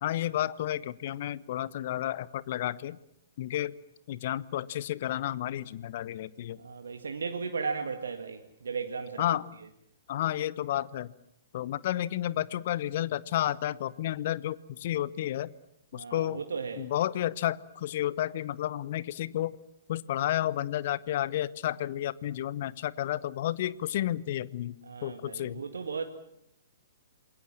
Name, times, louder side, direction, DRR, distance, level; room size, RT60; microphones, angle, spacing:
voice 1, 0.0-3.0 3.4-3.7 4.1-6.6 9.2-9.5 10.1-11.1 11.5-15.5 15.9-16.4 16.8-19.5 19.9-25.6, left 13 dB, 50° left, 19 dB, 1.0 m, -31 dB
voice 2, 6.6-9.4 15.9-16.8 24.8-26.0, right 5 dB, 70° right, 6 dB, 1.9 m, -36 dB
28.0 x 21.5 x 7.5 m, 0.78 s
figure-of-eight pair, 115°, 0 cm